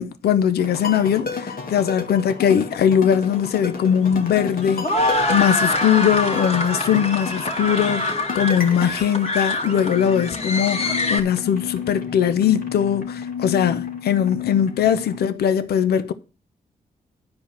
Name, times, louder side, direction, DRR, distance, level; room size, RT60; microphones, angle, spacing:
voice 1, 0.0-16.1, left 9 dB, 85° left, 0.7 m, -20 dB
sound 1, 0.6-15.3, left 5 dB, 65° left, 1.6 m, -32 dB
sound 2, 3.2-11.2, left 2 dB, 40° left, 2.2 m, -25 dB
10.5 x 4.7 x 7.4 m
cardioid pair, 50°, 16 cm